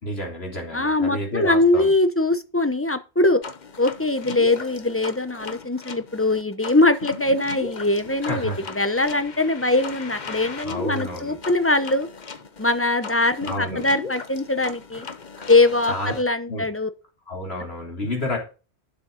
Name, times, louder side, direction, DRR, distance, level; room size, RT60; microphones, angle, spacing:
voice 1, 0.0-1.9 8.2-8.7 10.6-11.4 13.4-13.9 14.9-15.0 15.4-15.5 15.9-16.1 16.5-16.6 17.3-18.4, left 1 dB, 65° left, 3.5 m, -30 dB
voice 2, 0.7-3.4 3.8-12.1 12.6-15.1 15.5-16.9, left 2 dB, 15° left, 0.9 m, -22 dB
sound 1, 3.4-16.2, left 5 dB, 45° left, 1.1 m, -37 dB
12.0 x 6.8 x 4.0 m
omnidirectional pair, 1.1 m